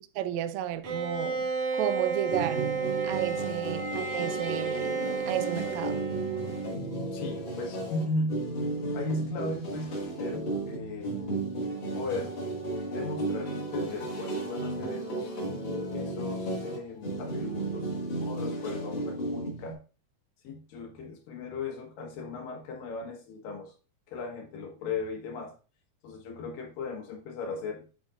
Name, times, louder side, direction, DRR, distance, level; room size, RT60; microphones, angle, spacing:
voice 1, 0.2-2.7 3.0-5.0 5.3-6.0, right 11 dB, 80° right, 1.6 m, -33 dB
Bowed string instrument, 0.8-6.9, right 4 dB, 60° right, 2.9 m, -33 dB
sound 1, 2.3-19.7, right 2 dB, 40° left, 2.3 m, -34 dB
voice 2, 7.1-8.5 8.9-11.4 11.9-12.4 12.9-15.3 15.9-19.8 20.4-23.7 24.1-25.6 26.0-27.9, left 3 dB, 90° left, 3.1 m, -37 dB
8.2 x 7.3 x 2.5 m
omnidirectional pair, 3.8 m